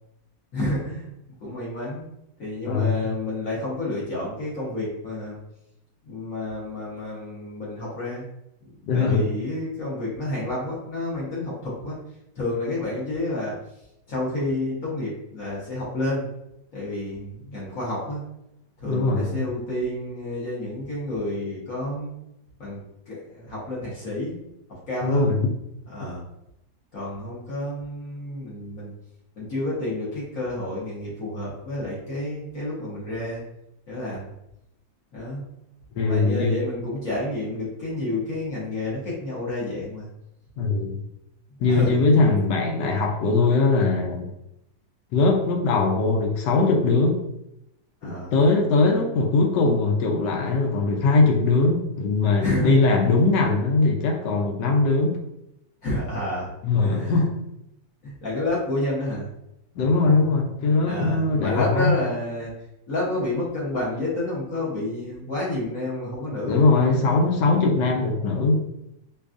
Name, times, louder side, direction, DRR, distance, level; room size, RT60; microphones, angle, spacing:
voice 1, 0.5-1.1 1.4-2.1 2.4-5.4 6.0-8.2 8.6-12.0 12.3-13.6 14.1-16.3 16.7-18.2 18.8-22.1 22.6-24.4 24.7-25.3 25.9-26.2 26.9-28.9 29.4-33.4 33.9-34.3 35.1-35.4 36.1-40.1 41.7-42.0 48.0-48.3 52.4-53.0 55.8-56.5 56.8-57.3 58.0-59.3 60.9-62.5 62.9-66.6, left 1 dB, 50° left, -6 dB, 1.3 m, -29 dB
voice 2, 2.7-3.1 8.9-9.3 18.9-19.4 25.0-25.5 35.9-36.5 40.6-41.0 41.6-44.3 45.1-47.2 48.0-55.2 56.6-57.3 59.8-62.0 66.5-68.6, left 3 dB, 75° left, 2 dB, 1.2 m, -21 dB
5.0 x 2.3 x 2.5 m, 0.84 s
omnidirectional pair, 2.0 m